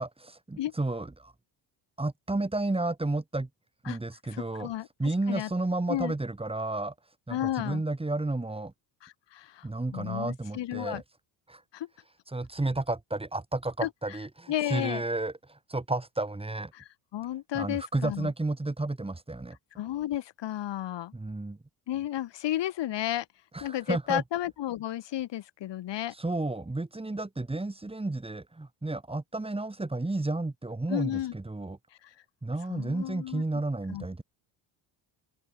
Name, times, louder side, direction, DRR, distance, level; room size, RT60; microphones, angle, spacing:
voice 1, 0.0-1.3 2.0-3.5 3.8-4.7 5.0-6.9 7.3-8.7 9.6-11.0 11.5-11.6 12.3-16.7 17.5-19.6 21.1-21.6 23.5-24.2 26.2-31.8 32.4-34.2, right 2 dB, 10° right, 5.6 m, -32 dB
voice 2, 4.3-4.9 5.3-5.5 5.9-6.1 7.3-7.8 9.0-11.0 11.7-11.9 13.8-14.2 14.5-15.0 16.7-18.3 19.8-21.1 21.9-23.3 23.6-26.1 30.9-31.3 32.0-32.1 32.7-33.4 33.9-34.1, left 13 dB, 65° left, 6.3 m, -33 dB
cardioid pair, 105°, 46 cm